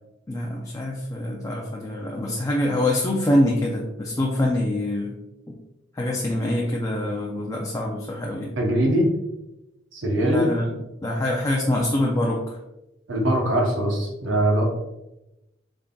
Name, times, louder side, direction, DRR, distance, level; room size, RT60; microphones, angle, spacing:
voice 1, 0.3-5.2 5.9-8.6 10.2-10.7 11.0-12.6, left 1 dB, 15° left, -2 dB, 0.4 m, -25 dB
voice 2, 8.6-9.1 9.9-10.4 13.1-14.6, right 1 dB, 70° right, 0 dB, 0.9 m, -21 dB
3.7 x 3.5 x 2.3 m, 0.94 s
head